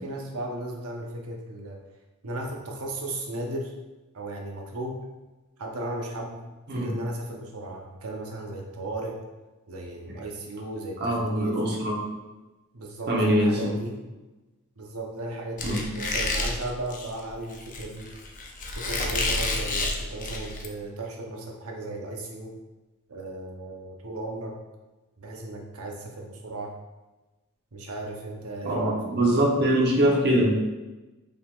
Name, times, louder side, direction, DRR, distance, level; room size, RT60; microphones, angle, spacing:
voice 1, 0.0-1.8 2.2-3.7 4.1-5.0 5.6-6.5 6.7-9.2 9.7-11.6 12.7-14.0 14.8-18.1 18.7-22.5 23.1-24.5 25.2-26.7 27.7-29.5, right 1 dB, 90° right, 0 dB, 0.8 m, -35 dB
voice 2, 11.0-12.0 13.1-13.8 15.6-15.9 28.6-30.6, right 1 dB, 50° right, -3 dB, 1.1 m, -23 dB
Squeak, 15.6-20.7, left 2 dB, 40° left, 0.6 m, -29 dB
5.2 x 3.6 x 2.4 m, 1.1 s
head